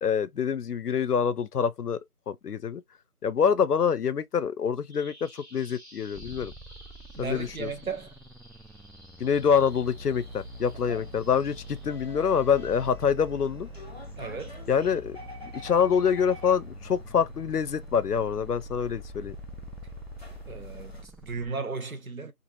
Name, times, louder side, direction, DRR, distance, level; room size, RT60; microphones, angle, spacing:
voice 1, 0.0-2.0 2.3-2.8 3.2-6.5 7.2-7.7 9.2-13.7 14.7-15.2 15.4-19.4, left 7 dB, 85° left, 0.6 m, -26 dB
Bird vocalization bird call bird song, 4.9-12.9, equal, 45° right, 1.0 m, -54 dB
sound 1, 6.1-21.5, right 1 dB, ahead, 0.3 m, -48 dB
voice 2, 7.2-8.2 10.9-11.1 14.2-14.7 20.5-22.3, right 4 dB, 65° right, 0.7 m, -35 dB
sound 2, 9.3-21.0, left 1 dB, 45° left, 0.6 m, -43 dB
3.1 x 2.4 x 2.5 m
figure-of-eight pair, 170°, 45 cm